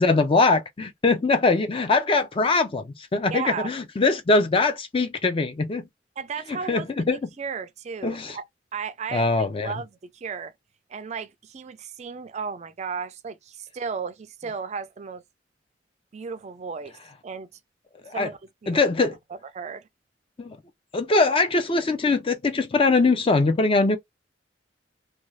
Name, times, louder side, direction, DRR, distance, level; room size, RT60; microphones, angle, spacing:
voice 1, 0.0-5.9 6.7-7.2 8.0-8.4 9.1-9.7 18.1-18.3 18.7-19.2 20.4-20.6 20.9-24.0, left 3 dB, 30° left, 0.4 m, -22 dB
voice 2, 3.3-3.7 6.2-8.5 8.7-10.5 10.9-15.2 16.1-17.5 18.1-19.9, right 5 dB, 35° right, 0.3 m, -35 dB
2.5 x 2.3 x 3.1 m
head